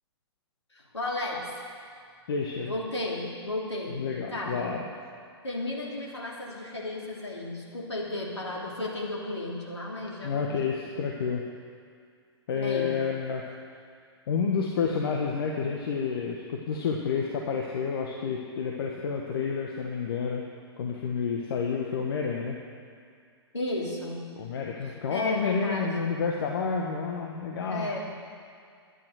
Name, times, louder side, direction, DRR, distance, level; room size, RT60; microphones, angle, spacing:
voice 1, 0.7-1.4 2.7-4.0 4.3-4.7 5.4-10.7 12.5-12.9 23.5-24.2 25.1-26.1 27.7-28.1, left 2 dB, 85° left, -3 dB, 3.2 m, -34 dB
voice 2, 2.3-2.7 3.9-4.8 10.2-11.4 12.5-13.4 14.3-20.4 20.8-22.6 24.4-27.9, left 5 dB, 55° left, 0 dB, 1.4 m, -29 dB
12.0 x 11.0 x 6.4 m, 2.3 s
figure-of-eight pair, 115°, 14 cm